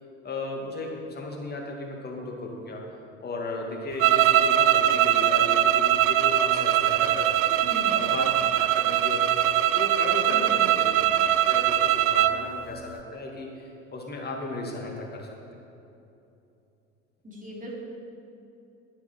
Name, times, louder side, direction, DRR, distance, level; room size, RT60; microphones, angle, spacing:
voice 1, 0.2-2.8 3.2-7.5 7.9-8.3 8.6-11.0 11.5-15.4, left 2 dB, 25° left, 0 dB, 2.2 m, -35 dB
sound 1, 4.0-12.4, right 11 dB, 40° right, 0.5 m, -22 dB
voice 2, 7.6-8.1 10.3-10.7 17.2-17.7, equal, 20° right, -3 dB, 2.9 m, -39 dB
11.5 x 9.6 x 4.5 m, 2.8 s
hypercardioid pair, 70°, 36 cm